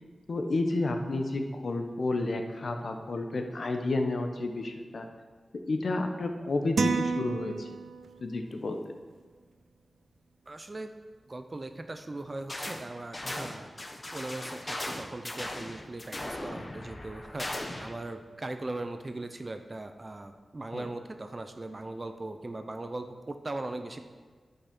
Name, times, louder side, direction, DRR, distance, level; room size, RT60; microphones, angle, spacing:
voice 1, 0.3-5.1 5.7-7.8 8.2-8.8 20.7-20.9, left 2 dB, 60° left, 5 dB, 0.9 m, -31 dB
sound 1, 6.8-8.3, right 5 dB, 80° right, 0.6 m, -30 dB
voice 2, 10.5-10.9 11.3-13.7 14.1-24.0, right 2 dB, 30° right, 7 dB, 0.6 m, -39 dB
sound 2, 12.5-12.8 13.1-17.9, left 1 dB, 25° left, 1.0 m, -38 dB
10.0 x 5.6 x 6.0 m, 1.5 s
wide cardioid pair, 105°, 0 cm